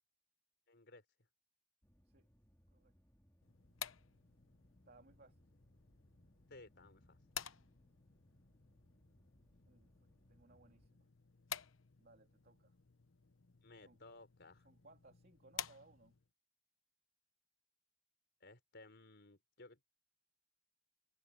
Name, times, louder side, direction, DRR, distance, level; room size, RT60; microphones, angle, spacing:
voice 1, 0.7-1.0 6.5-7.2 13.6-14.7 18.4-19.8, left 2 dB, 55° left, 4.2 m, -59 dB
sound 1, 1.8-10.9, equal, 10° left, 2.3 m, -71 dB
sound 2, 3.4-16.3, left 9 dB, 75° left, 1.0 m, -53 dB
voice 2, 4.8-5.4 9.7-11.1 12.0-12.7 13.8-14.0 14.6-16.1, right 2 dB, 50° right, 3.2 m, -65 dB
head